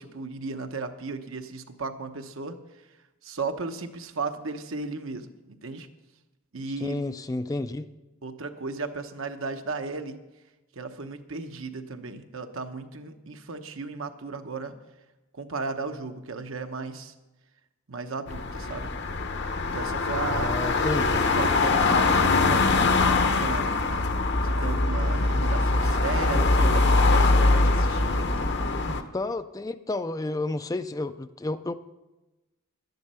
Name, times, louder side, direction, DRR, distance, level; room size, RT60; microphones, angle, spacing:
voice 1, 0.0-2.6 3.2-5.9 6.5-7.0 8.2-10.2 10.7-14.7 15.3-17.1 17.9-18.9 19.7-20.5 21.0-22.8 23.2-23.7 24.4-28.5, right 4 dB, 70° right, 7 dB, 0.9 m, -35 dB
voice 2, 6.8-7.9 20.3-21.2 28.9-31.7, left 2 dB, 15° left, 11 dB, 0.3 m, -31 dB
sound 1, 18.3-29.0, left 3 dB, 50° left, 0.8 m, -23 dB
12.0 x 10.5 x 5.6 m, 1.1 s
head